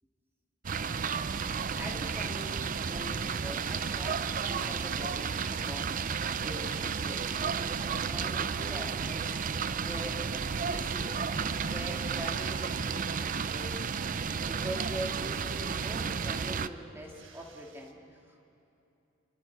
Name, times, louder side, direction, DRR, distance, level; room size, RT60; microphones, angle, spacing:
sound 1, 0.6-16.7, right 6 dB, 45° right, 0.5 m, -32 dB
Domestic sounds home sounds, 1.0-10.2 10.4-10.5 11.3-15.2 17.0-17.9, right 7 dB, 90° right, 1.4 m, -53 dB
voice 1, 1.8-11.2 11.7-13.8 14.3-18.5, right 1 dB, 15° right, 0 dB, 2.5 m, -43 dB
28.5 x 24.0 x 4.7 m, 2.8 s
head